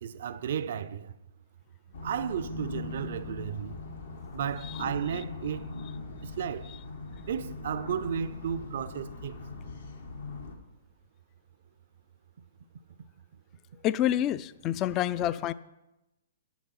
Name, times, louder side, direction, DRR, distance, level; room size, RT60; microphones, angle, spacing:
voice 1, 0.0-1.1 2.0-3.8 4.3-5.7 6.2-6.7 7.3-9.4, right 8 dB, 60° right, 0.4 m, -33 dB
sound 1, 1.9-10.5, left 3 dB, 75° left, 1.5 m, -41 dB
voice 2, 13.8-15.5, left 12 dB, 30° left, 0.3 m, -27 dB
8.7 x 7.1 x 5.6 m
hypercardioid pair, 125°, 0 cm